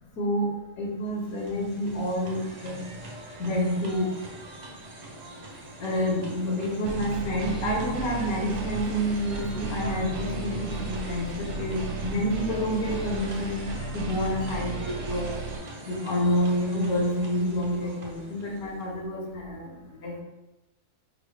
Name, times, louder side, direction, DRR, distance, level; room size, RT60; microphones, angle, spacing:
voice 1, 0.2-0.5 0.8-2.8 3.4-4.1 5.8-13.6 13.9-15.3 15.9-19.7 20.0-20.2, equal, 70° left, -1 dB, 1.3 m, -28 dB
sound 1, 0.9-19.0, right 1 dB, 55° right, 0.4 m, -43 dB
sound 2, 6.9-15.6, right 3 dB, 75° right, 1.1 m, -35 dB
4.7 x 2.0 x 3.3 m, 0.98 s
omnidirectional pair, 1.6 m